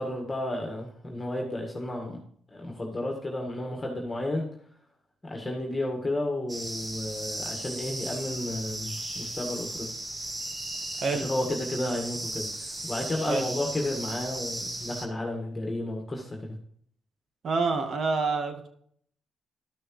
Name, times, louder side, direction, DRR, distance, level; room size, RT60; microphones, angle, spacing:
voice 1, 0.0-2.2 2.5-4.5 5.2-9.9 11.1-12.5 12.8-16.6, left 1 dB, 20° left, 0 dB, 1.8 m, -32 dB
sound 1, 6.5-15.1, right 1 dB, 30° right, 1.6 m, -36 dB
voice 2, 11.0-11.3 13.3-13.5 17.4-18.7, right 4 dB, 55° right, 5 dB, 1.6 m, -27 dB
13.0 x 6.2 x 3.2 m, 0.64 s
cardioid pair, 90°, 0 cm